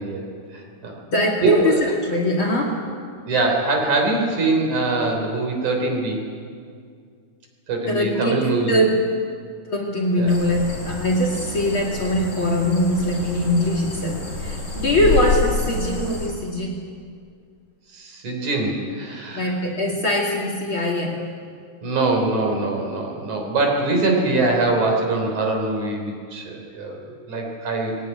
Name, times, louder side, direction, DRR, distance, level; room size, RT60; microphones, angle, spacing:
voice 1, 0.0-0.9 1.4-1.9 3.3-6.2 7.7-8.7 10.2-10.3 10.8-11.0 14.9-15.2 17.9-19.5 21.8-28.0, right 3 dB, 55° right, 2 dB, 4.8 m, -23 dB
voice 2, 1.1-2.9 7.9-9.0 9.7-16.9 19.3-21.2, left 1 dB, 40° left, 1 dB, 2.7 m, -22 dB
sound 1, 10.3-16.3, left 3 dB, 20° left, 5.2 m, -28 dB
20.5 x 18.5 x 9.6 m, 2.2 s
omnidirectional pair, 4.1 m